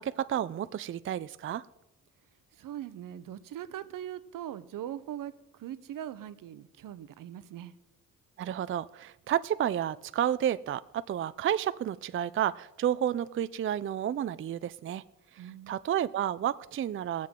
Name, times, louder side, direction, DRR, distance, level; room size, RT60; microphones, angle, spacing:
voice 1, 0.0-1.7 8.4-15.0 15.3-17.3, right 10 dB, 40° right, 0.4 m, -31 dB
voice 2, 2.5-7.7 15.4-15.8, right 11 dB, 70° right, 0.8 m, -41 dB
21.5 x 7.6 x 3.7 m
cardioid pair, 75°, 33 cm